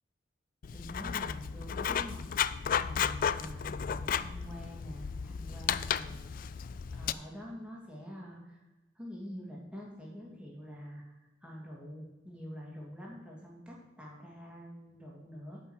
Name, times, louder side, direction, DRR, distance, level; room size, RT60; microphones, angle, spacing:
Writing, 0.6-7.1, left 8 dB, 45° left, 0.3 m, -34 dB
voice 1, 0.7-6.3 6.9-8.6 9.0-15.6, equal, 5° right, -3 dB, 2.6 m, -46 dB
8.9 x 5.6 x 8.0 m, 1.1 s
head